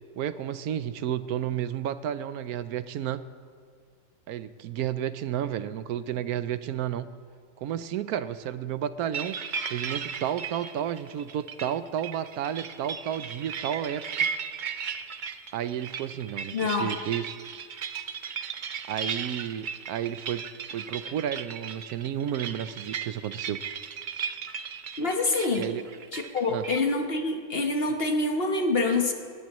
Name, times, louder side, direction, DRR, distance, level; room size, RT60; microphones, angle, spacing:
voice 1, 0.2-3.2 4.3-7.1 7.6-9.4 9.7-14.3 15.5-17.4 18.9-20.5 20.7-23.6 25.6-25.8 26.5-26.7, right 10 dB, 80° right, 13 dB, 1.1 m, -32 dB
sound 1, 9.1-26.8, right 6 dB, 60° right, 0.5 m, -36 dB
voice 2, 16.5-16.9 25.0-25.7 26.1-29.1, left 3 dB, 45° left, 4 dB, 1.2 m, -26 dB
19.5 x 17.5 x 3.0 m, 2.1 s
omnidirectional pair, 1.6 m